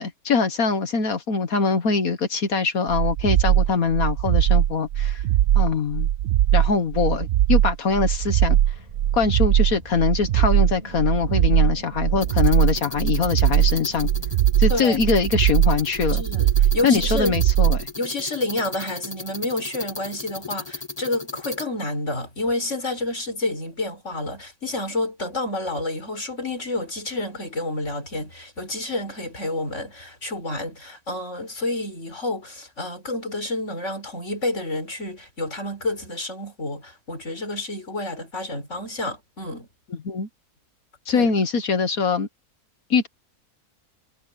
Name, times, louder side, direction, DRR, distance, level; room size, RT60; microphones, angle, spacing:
voice 1, 0.0-5.2 5.5-6.1 6.5-8.6 9.1-14.1 14.6-16.2 16.8-17.9 39.9-40.3 41.1-42.3 42.9-43.1, left 5 dB, 60° left, 1.7 m, -23 dB
sound 1, 2.9-17.8, right 12 dB, 70° right, 0.6 m, -20 dB
sound 2, 8.7-16.0, right 1 dB, 25° right, 4.4 m, -44 dB
sound 3, 12.2-21.7, left 2 dB, 15° left, 2.1 m, -36 dB
voice 2, 14.7-15.0 16.1-17.3 18.0-39.7 41.1-41.3, left 2 dB, 45° left, 5.0 m, -29 dB
omnidirectional pair, 1.7 m